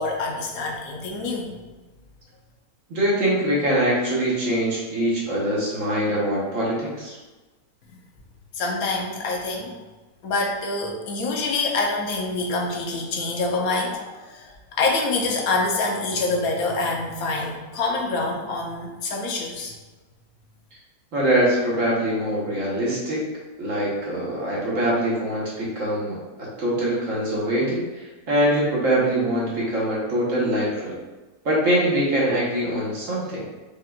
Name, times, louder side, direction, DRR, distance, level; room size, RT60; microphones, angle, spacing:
voice 1, 0.0-1.6 8.5-9.7 10.2-19.7, left 3 dB, 70° left, 1 dB, 1.1 m, -26 dB
voice 2, 2.9-7.2 21.1-23.2 23.6-31.0 31.4-33.5, right 1 dB, 60° right, -5 dB, 1.3 m, -23 dB
5.0 x 2.8 x 2.3 m, 1.2 s
omnidirectional pair, 1.6 m